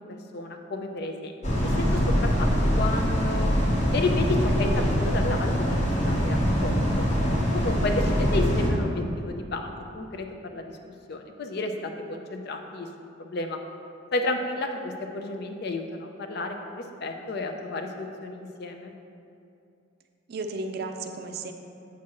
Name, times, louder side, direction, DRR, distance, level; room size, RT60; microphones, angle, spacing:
voice 1, 0.0-3.5 3.9-7.1 7.5-10.7 11.1-12.9 13.2-13.6 14.1-19.0, left 2 dB, 50° left, 5 dB, 0.5 m, -32 dB
sound 1, 1.4-8.7, equal, 35° left, 0.9 m, -24 dB
voice 2, 20.3-21.5, right 3 dB, 50° right, 5 dB, 0.4 m, -34 dB
7.3 x 5.9 x 2.9 m, 2.6 s
head